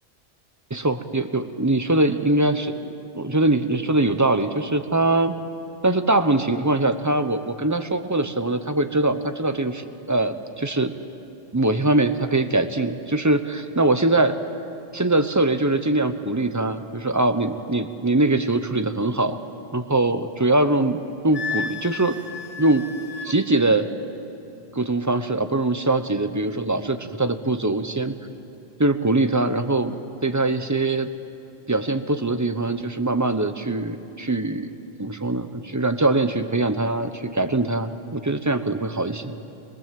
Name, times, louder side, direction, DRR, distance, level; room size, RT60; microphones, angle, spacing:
voice 1, 0.7-5.3 5.8-10.9 11.5-14.4 14.9-19.4 19.7-22.2 22.6-22.9 23.2-23.9 24.7-28.1 28.8-31.1 31.7-34.7 35.0-39.4, right 2 dB, 15° right, 9 dB, 0.8 m, -22 dB
Wind instrument woodwind instrument, 21.3-23.3, left 6 dB, 30° left, 1.4 m, -32 dB
26.0 x 22.0 x 7.7 m, 2.8 s
omnidirectional pair, 1.2 m